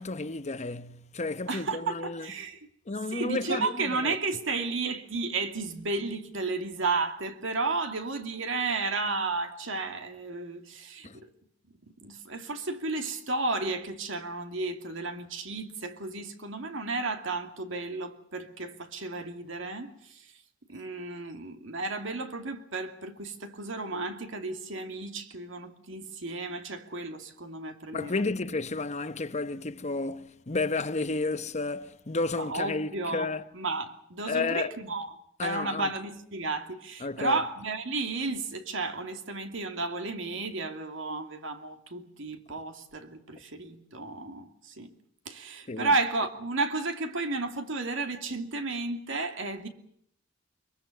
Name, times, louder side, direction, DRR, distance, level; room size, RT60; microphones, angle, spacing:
voice 1, 0.0-2.3 2.9-4.2 11.0-11.2 27.9-33.4 34.3-34.7 35.4-35.9 37.0-37.3 45.7-45.9, left 3 dB, 35° left, 0.9 m, -32 dB
voice 2, 1.5-2.6 3.1-11.3 12.0-20.3 20.7-28.3 32.3-33.3 33.5-35.1 35.4-44.9 45.3-49.7, right 3 dB, 70° right, 2.6 m, -33 dB
23.0 x 23.0 x 6.8 m
head